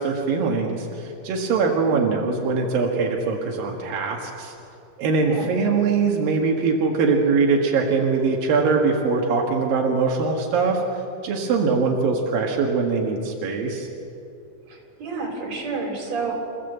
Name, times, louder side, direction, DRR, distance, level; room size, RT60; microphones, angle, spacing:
voice 1, 0.0-4.5 5.0-10.8 11.2-13.9, right 4 dB, 85° right, 0 dB, 3.5 m, -22 dB
voice 2, 1.9-2.2 5.2-5.6 14.7-16.3, right 4 dB, 50° right, 1 dB, 5.0 m, -30 dB
27.5 x 16.5 x 8.0 m, 2.7 s
omnidirectional pair, 3.9 m